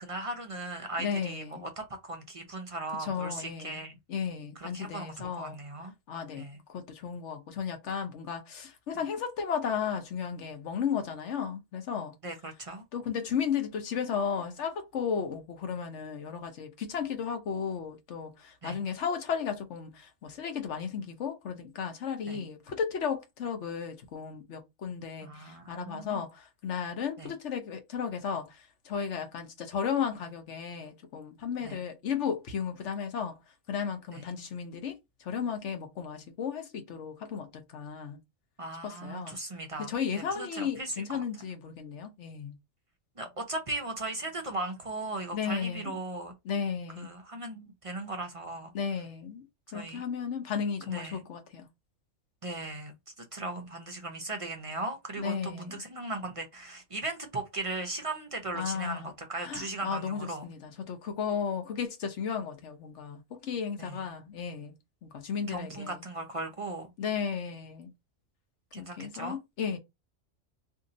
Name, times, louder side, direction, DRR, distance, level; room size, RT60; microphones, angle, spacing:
voice 1, 0.0-3.9 4.6-5.9 6.4-6.6 12.2-12.8 18.6-18.8 22.3-22.4 25.2-26.2 27.2-27.3 31.6-31.8 34.1-34.3 38.6-39.9 40.4-41.2 43.2-46.3 47.0-48.7 49.7-50.0 50.9-51.2 52.4-60.4 63.8-64.0 65.5-66.9 68.7-69.4, right 2 dB, 40° right, 0.5 m, -38 dB
voice 2, 1.0-1.6 3.0-3.8 4.1-5.6 6.1-6.4 6.7-12.2 12.9-33.4 33.7-38.2 38.8-39.4 39.8-42.6 45.3-46.0 46.4-47.1 48.7-49.4 49.7-51.7 55.2-55.8 58.5-59.1 59.4-64.7 65.0-66.0 67.0-67.9 68.7-69.8, left 7 dB, 65° left, 1.0 m, -34 dB
2.7 x 2.7 x 3.8 m
omnidirectional pair, 1.3 m